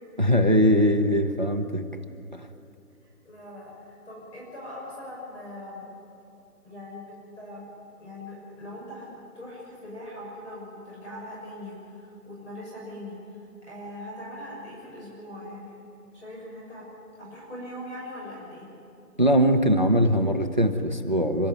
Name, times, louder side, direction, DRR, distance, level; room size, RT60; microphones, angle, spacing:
voice 1, 0.2-1.9 2.3-2.5 19.2-21.5, equal, 30° right, 8 dB, 0.6 m, -21 dB
voice 2, 3.0-5.9 6.6-7.7 8.0-9.1 9.3-13.2 13.6-15.8 16.1-16.9 17.2-18.7, left 1 dB, 50° left, -5 dB, 6.4 m, -41 dB
27.5 x 13.0 x 9.5 m, 2.8 s
hypercardioid pair, 175°, 46 cm